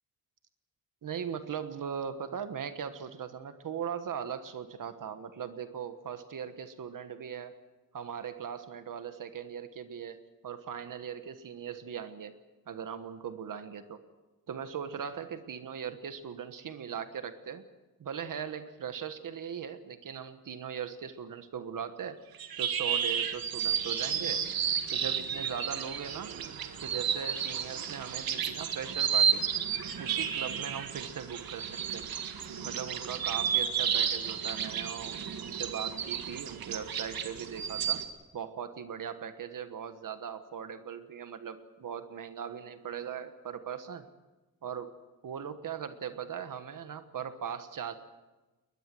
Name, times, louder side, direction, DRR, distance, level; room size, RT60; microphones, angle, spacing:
voice 1, 1.0-7.5 7.9-12.3 12.7-14.0 14.5-17.6 18.0-22.2 22.6-24.4 24.9-26.3 26.8-29.5 30.0-32.0 32.6-38.1 38.3-44.1 44.6-44.9 45.2-47.9, right 8 dB, 65° right, 10 dB, 1.3 m, -39 dB
sound 1, 22.3-38.0, right 8 dB, 85° right, 1.8 m, -32 dB
21.0 x 20.5 x 7.7 m, 1.1 s
wide cardioid pair, 155°, 35 cm